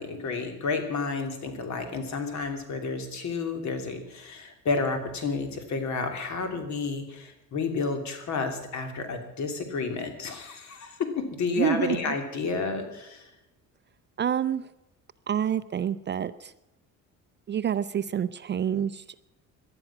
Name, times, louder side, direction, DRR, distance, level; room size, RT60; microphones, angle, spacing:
voice 1, 0.0-13.3, left 4 dB, 55° left, 6 dB, 3.0 m, -31 dB
voice 2, 11.6-12.1 14.2-14.7 15.3-16.5 17.5-19.0, right 9 dB, 35° right, 14 dB, 0.5 m, -27 dB
18.5 x 11.5 x 5.9 m, 0.93 s
cardioid pair, 140°, 33 cm